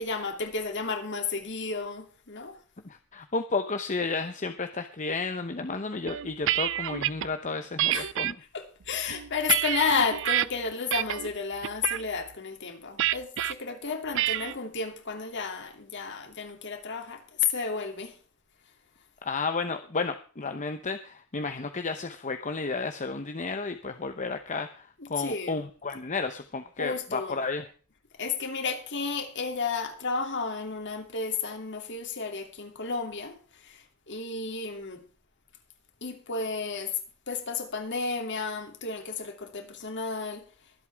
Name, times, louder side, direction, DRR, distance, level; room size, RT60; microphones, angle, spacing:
voice 1, 0.0-2.6 7.9-8.1 8.5-18.2 25.0-25.6 26.8-27.4 28.2-35.0 36.0-37.0 37.3-40.5, left 5 dB, 55° left, 2.8 m, -32 dB
voice 2, 2.8-8.4 19.2-27.7, left 4 dB, 35° left, 0.9 m, -32 dB
sound 1, 6.1-7.3 7.8-8.3 8.9-10.5 10.9-11.3 11.6-12.0 13.0-13.5 14.2-14.5, right 13 dB, 60° right, 0.5 m, -28 dB
23.5 x 8.2 x 3.5 m
head